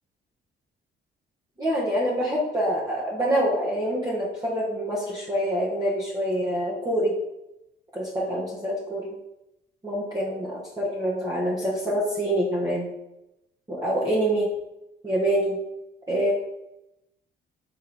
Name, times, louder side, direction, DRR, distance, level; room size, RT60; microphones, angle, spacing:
voice 1, 1.6-7.2 7.9-9.1 9.8-12.9 13.7-14.5 15.0-15.6 16.1-16.3, equal, 20° right, -7 dB, 1.6 m, -26 dB
5.6 x 3.8 x 4.7 m, 0.89 s
cardioid pair, 90°, 20 cm